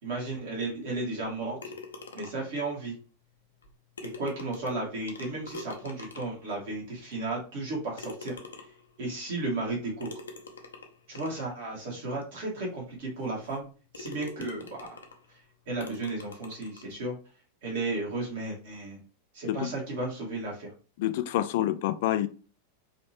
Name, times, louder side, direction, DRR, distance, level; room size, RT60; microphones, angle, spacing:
voice 1, 0.0-1.7 2.1-2.9 4.0-8.4 9.0-10.1 11.1-13.7 13.9-14.8 15.7-17.1 17.6-19.0 19.3-20.7, right 2 dB, 50° right, -3 dB, 2.2 m, -34 dB
sound 1, 1.6-2.6 3.6-3.7 4.0-6.5 7.1-7.2 8.0-8.9 10.0-11.5 12.2-12.3 12.8-12.9 13.5-13.6 13.9-15.2 15.8-16.9, left 3 dB, 70° left, 0.8 m, -44 dB
voice 2, 21.0-22.3, left 13 dB, 50° left, 12 dB, 0.4 m, -27 dB
4.9 x 3.1 x 3.0 m, 0.35 s
figure-of-eight pair, 90°, 0 cm